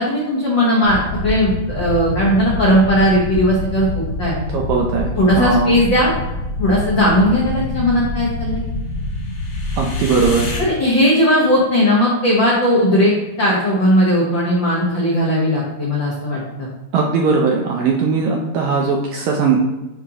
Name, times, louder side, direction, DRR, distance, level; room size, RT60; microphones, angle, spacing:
voice 1, 0.0-4.3 5.2-6.1 6.6-8.6 10.6-13.1 13.4-16.7, equal, 85° left, -5 dB, 1.0 m, -17 dB
sound 1, 0.8-10.6, left 1 dB, 65° left, 1.5 m, -26 dB
voice 2, 4.5-5.1 5.4-5.7 9.8-10.5 16.9-19.6, right 4 dB, 80° right, 0 dB, 1.7 m, -18 dB
10.0 x 3.7 x 2.9 m, 1.1 s
omnidirectional pair, 3.9 m